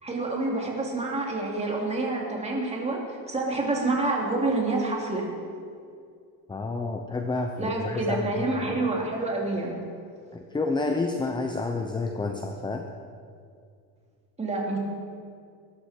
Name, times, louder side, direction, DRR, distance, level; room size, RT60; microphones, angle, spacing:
voice 1, 0.0-5.3 7.6-9.7 14.4-14.8, right 2 dB, 15° right, -2 dB, 3.2 m, -28 dB
voice 2, 6.5-8.2 8.5-8.7 10.3-12.8, left 3 dB, 10° left, 4 dB, 0.8 m, -29 dB
21.5 x 12.5 x 4.6 m, 2.3 s
cardioid pair, 140°, 39 cm